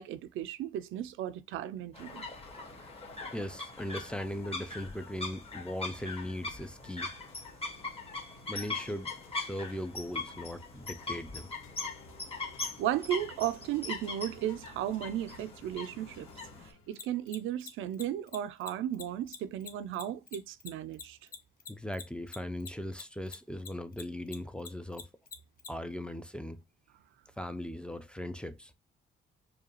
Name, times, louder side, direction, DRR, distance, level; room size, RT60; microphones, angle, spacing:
voice 1, 0.0-2.3 12.8-16.3 16.9-21.2, right 11 dB, 85° right, 0.4 m, -35 dB
sound 1, 1.9-16.7, left 3 dB, 30° left, 1.3 m, -41 dB
voice 2, 3.3-7.1 8.5-11.5 21.7-25.1 25.7-26.6 27.4-28.7, left 1 dB, 5° left, 0.4 m, -39 dB
sound 2, 6.8-17.4, left 4 dB, 85° left, 0.7 m, -58 dB
Mechanisms, 16.9-23.7 23.9-25.7, left 6 dB, 45° left, 0.7 m, -44 dB
4.8 x 2.3 x 2.9 m
cardioid pair, 90°, 20 cm